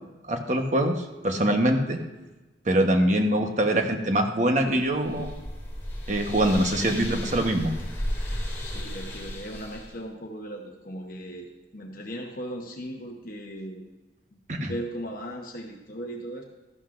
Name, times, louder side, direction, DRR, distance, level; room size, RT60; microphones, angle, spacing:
voice 1, 0.3-2.0 2.6-5.3 6.1-7.7 14.5-14.7, right 1 dB, 40° right, 4 dB, 1.1 m, -23 dB
sound 1, 4.6-10.0, equal, 15° left, 2.3 m, -34 dB
voice 2, 8.6-13.8 14.3-16.4, equal, 50° left, 1 dB, 1.0 m, -38 dB
13.5 x 11.5 x 2.5 m, 1.2 s
head